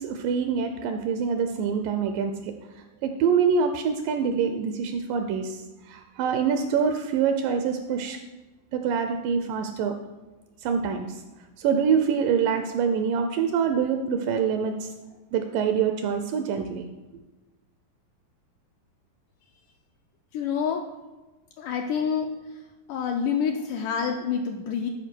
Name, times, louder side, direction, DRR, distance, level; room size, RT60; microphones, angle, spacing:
voice 1, 0.0-2.5 3.0-8.2 8.7-9.9 10.6-11.2 11.6-14.9 15.3-16.9, right 6 dB, 80° right, 6 dB, 2.1 m, -25 dB
voice 2, 20.3-20.8 21.6-22.3 22.9-24.9, left 7 dB, 85° left, 3 dB, 1.9 m, -27 dB
11.5 x 4.8 x 4.4 m, 1.1 s
omnidirectional pair, 4.1 m